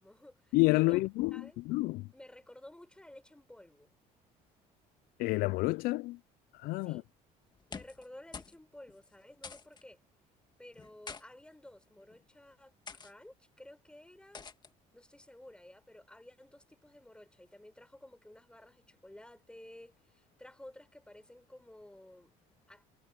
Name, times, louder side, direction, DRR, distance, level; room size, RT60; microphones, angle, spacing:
voice 1, 0.0-1.0 1.3-1.6 2.1-3.9 6.8-7.1 7.7-10.0 10.6-14.5 14.9-22.4 22.7-22.8, left 1 dB, 5° left, 4.8 m, -54 dB
voice 2, 0.5-2.1 5.2-6.2 6.5-7.0, left 22 dB, 80° left, 0.5 m, -29 dB
sound 1, 7.5-8.1 8.3-8.6 8.9-9.0 9.4-9.8 10.8-11.2 12.0-12.2 12.9-13.1 14.3-14.7, left 5 dB, 30° left, 2.0 m, -46 dB
cardioid pair, 100°, 15 cm